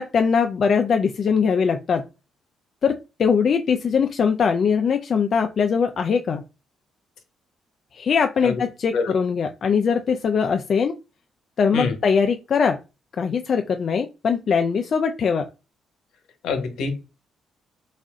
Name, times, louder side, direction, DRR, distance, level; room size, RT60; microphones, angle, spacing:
voice 1, 0.0-2.0 2.8-6.4 7.9-10.9 11.6-12.8 13.2-15.5, left 6 dB, 50° left, 5 dB, 0.4 m, -21 dB
voice 2, 16.4-16.9, left 4 dB, 80° left, 6 dB, 1.1 m, -25 dB
4.1 x 2.5 x 3.6 m, 0.29 s
cardioid pair, 90°, 0 cm